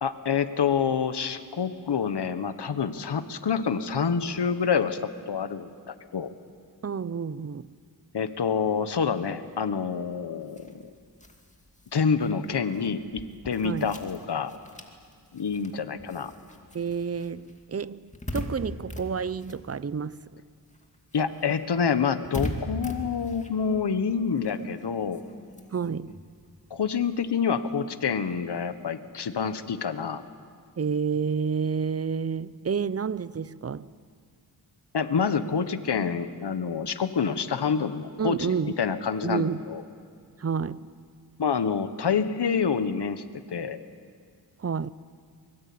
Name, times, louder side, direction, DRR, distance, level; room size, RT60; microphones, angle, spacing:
voice 1, 0.0-6.3 8.1-10.8 11.9-14.5 15.3-16.3 21.1-25.2 26.7-30.2 34.9-38.5 38.8-39.8 41.4-43.2 43.5-43.8, left 6 dB, 75° left, 1.3 m, -27 dB
voice 2, 6.8-7.8 13.6-13.9 16.7-20.2 25.7-26.2 30.8-33.9 38.2-38.7 39.2-39.6 40.4-41.0 44.6-44.9, right 6 dB, 35° right, 0.6 m, -30 dB
sound 1, 10.4-20.3 20.6-27.5, left 1 dB, 15° left, 2.4 m, -41 dB
24.0 x 22.5 x 8.6 m
wide cardioid pair, 75°, 40 cm